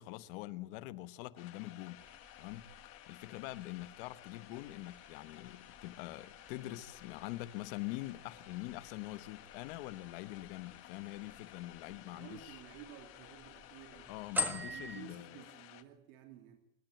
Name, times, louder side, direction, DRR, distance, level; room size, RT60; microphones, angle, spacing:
voice 1, 0.0-2.0 2.4-2.7 3.1-12.6 14.1-15.4, left 17 dB, 65° left, 1.2 m, -44 dB
sound 1, 1.4-15.8, left 15 dB, 45° left, 1.6 m, -55 dB
sound 2, 2.0-15.0, left 2 dB, 5° right, 1.4 m, -47 dB
voice 2, 11.8-14.2 14.6-16.6, right 10 dB, 75° right, 2.8 m, -53 dB
25.5 x 12.5 x 9.0 m
cardioid pair, 175°, 30 cm